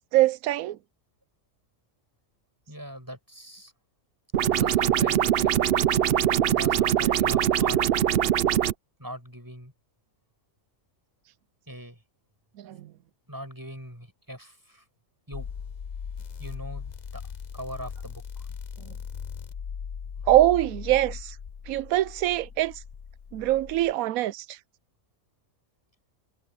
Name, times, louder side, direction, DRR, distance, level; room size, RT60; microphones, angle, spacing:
voice 1, 0.1-0.8 12.6-12.9 20.3-21.3 21.7-22.7 23.3-24.6, right 15 dB, 85° right, 1.0 m, -23 dB
voice 2, 2.7-3.7 4.5-5.5 6.5-7.8 9.0-9.7 11.7-12.0 13.3-14.8 15.3-15.5 16.4-17.2 17.5-18.5, equal, 15° right, 7.8 m, -41 dB
sound 1, 4.3-8.7, right 10 dB, 55° right, 0.7 m, -22 dB
sound 2, 15.3-23.9, left 6 dB, 45° left, 0.6 m, -39 dB
omnidirectional pair, 1.4 m